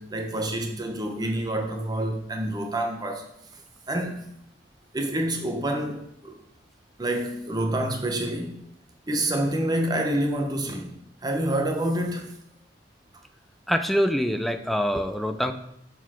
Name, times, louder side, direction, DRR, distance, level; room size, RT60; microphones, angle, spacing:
voice 1, 0.0-3.2 3.9-4.2 4.9-6.4 7.0-8.6 9.1-10.9 11.2-12.3, right 1 dB, 20° right, 2 dB, 0.9 m, -27 dB
voice 2, 13.7-15.5, equal, ahead, 7 dB, 0.3 m, -24 dB
7.1 x 4.1 x 4.4 m, 0.74 s
head